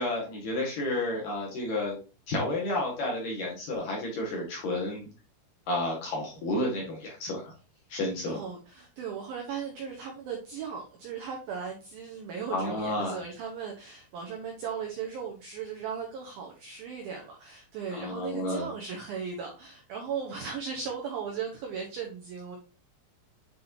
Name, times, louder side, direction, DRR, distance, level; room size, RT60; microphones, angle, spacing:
voice 1, 0.0-2.0 2.3-5.1 5.7-7.5 7.9-8.4 12.5-13.2 17.9-18.7, left 1 dB, 60° left, -2 dB, 2.5 m, -31 dB
voice 2, 8.3-22.6, right 6 dB, 80° right, 1 dB, 2.1 m, -37 dB
8.2 x 4.2 x 2.7 m, 0.33 s
omnidirectional pair, 5.4 m